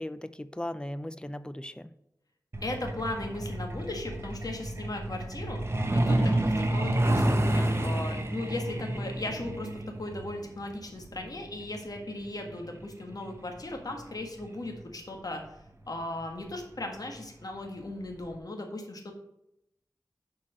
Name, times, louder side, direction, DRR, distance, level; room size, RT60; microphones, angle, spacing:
voice 1, 0.0-1.9 6.2-6.4, left 1 dB, 15° left, 14 dB, 0.4 m, -37 dB
Truck, 2.5-14.8 16.1-16.2 16.6-16.8 17.2-17.5 17.8-17.9 18.3-18.4, right 1 dB, 35° right, 1.1 m, -30 dB
voice 2, 2.6-5.6 5.9-6.2 6.7-9.7 10.0-15.4 15.9-19.1, left 2 dB, 60° left, 3 dB, 1.6 m, -37 dB
7.3 x 4.6 x 6.4 m, 0.81 s
wide cardioid pair, 75°, 7 cm